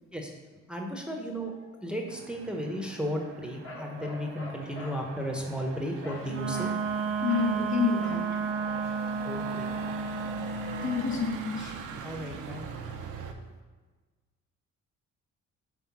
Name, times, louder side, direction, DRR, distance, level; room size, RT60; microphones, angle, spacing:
voice 1, 0.7-1.5 1.8-6.7 9.2-9.7 12.0-12.7, equal, 5° right, 1 dB, 0.8 m, -34 dB
Motor vehicle (road), 2.1-13.3, right 5 dB, 85° right, 0.7 m, -42 dB
Bark, 3.6-5.0 6.0-6.3 6.5-6.8 7.3-7.6 8.0-8.3, left 1 dB, 45° left, 1.5 m, -43 dB
Wind instrument woodwind instrument, 6.3-11.0, right 5 dB, 45° right, 0.7 m, -32 dB
voice 2, 7.2-8.2 8.8-8.9 10.8-11.7, left 5 dB, 65° left, 0 dB, 1.3 m, -29 dB
5.7 x 3.4 x 5.8 m, 1.3 s
cardioid pair, 90°, 30 cm